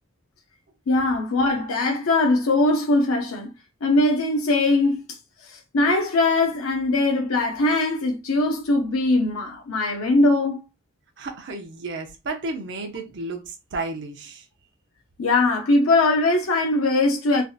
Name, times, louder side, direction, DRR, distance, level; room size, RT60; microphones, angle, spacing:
voice 1, 0.9-3.5 3.8-5.0 5.5-10.6 15.2-17.4, left 2 dB, 85° left, 0.5 m, -21 dB
voice 2, 11.2-14.5, right 3 dB, 55° right, 0.6 m, -32 dB
3.2 x 2.7 x 2.3 m
head